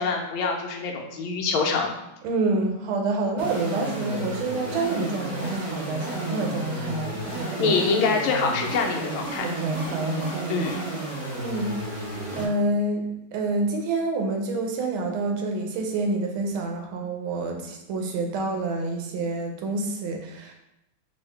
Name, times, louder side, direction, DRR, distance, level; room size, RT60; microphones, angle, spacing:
voice 1, 0.0-1.9 7.4-9.4 10.5-10.9, left 4 dB, 90° left, 2 dB, 1.5 m, -25 dB
voice 2, 2.2-7.8 9.4-10.5 11.4-11.7 12.1-13.0 13.3-20.5, right 2 dB, 85° right, 3 dB, 1.5 m, -28 dB
sound 1, 3.4-12.5, right 2 dB, 30° right, 0.6 m, -32 dB
4.5 x 2.8 x 3.3 m, 0.88 s
omnidirectional pair, 2.2 m